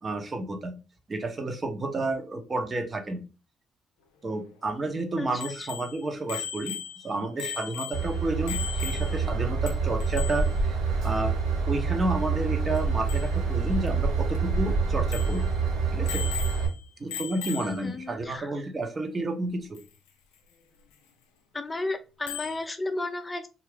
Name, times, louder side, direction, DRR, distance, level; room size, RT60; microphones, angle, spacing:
voice 1, 0.0-0.7 1.1-3.2 4.2-6.7 7.0-11.3 11.7-15.4 15.9-16.2 17.0-19.8, right 2 dB, 40° right, 5 dB, 0.9 m, -31 dB
Bicycle bell, 5.4-9.4 9.7-9.8 10.0-10.5 12.8-12.9 13.1-13.3 13.9-14.0 14.4-14.5 15.1-15.5 16.1-16.8 17.1-17.9 19.8-19.9 22.3-22.6, left 9 dB, 85° left, 0.4 m, -37 dB
Train / Engine, 7.9-16.7, right 4 dB, 75° right, 1.0 m, -27 dB
voice 2, 17.6-18.5 21.5-23.5, left 2 dB, 25° left, 8 dB, 0.5 m, -33 dB
2.7 x 2.5 x 3.3 m, 0.31 s
hypercardioid pair, 50°, 0 cm